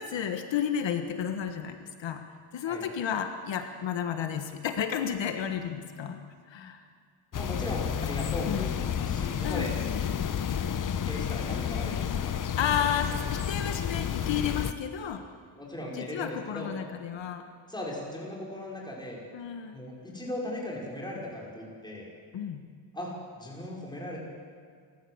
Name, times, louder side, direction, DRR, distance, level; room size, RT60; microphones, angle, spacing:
voice 1, 0.0-2.2 2.5-6.2 6.5-6.8 8.4-8.7 9.4-10.0 12.6-15.2 15.9-17.5 19.3-19.8 22.3-22.6, left 8 dB, 65° left, 7 dB, 1.5 m, -32 dB
sound 1, 7.3-14.7, left 8 dB, 40° left, 0.9 m, -31 dB
voice 2, 7.3-9.7 11.1-12.4 15.6-16.7 17.7-19.2 19.7-22.1 22.9-24.2, left 1 dB, 10° left, -3 dB, 5.7 m, -38 dB
28.5 x 14.5 x 8.0 m, 2.1 s
cardioid pair, 120°, 47 cm